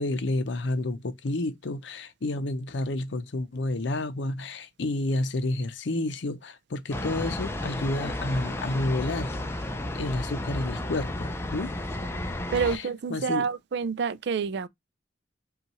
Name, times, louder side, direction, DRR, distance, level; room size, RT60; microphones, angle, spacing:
voice 1, 0.0-9.3 10.0-11.7 12.7-12.8 13.1-13.5, left 2 dB, 75° left, 0.6 m, -30 dB
sound 1, 6.9-12.8, left 1 dB, 15° left, 0.4 m, -33 dB
voice 2, 12.5-14.7, right 5 dB, 60° right, 0.4 m, -28 dB
5.3 x 2.4 x 3.0 m
head